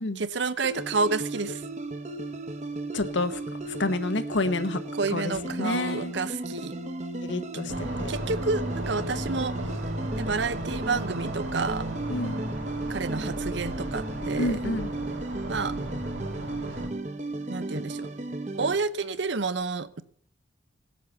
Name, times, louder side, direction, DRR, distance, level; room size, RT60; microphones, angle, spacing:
voice 1, 0.2-1.6 4.9-6.7 8.1-9.5 10.1-11.9 12.9-14.6 15.5-15.7 17.5-18.1 18.6-20.0, right 4 dB, 70° right, 0.8 m, -29 dB
sound 1, 0.6-18.7, right 2 dB, 40° right, 1.1 m, -35 dB
voice 2, 2.9-3.4 3.8-4.8 5.1-6.1 7.2-8.1 12.1-12.4 14.4-14.9, left 2 dB, 75° left, 1.2 m, -29 dB
sound 2, 7.7-16.9, right 1 dB, 85° right, 2.7 m, -35 dB
17.5 x 8.5 x 6.9 m
head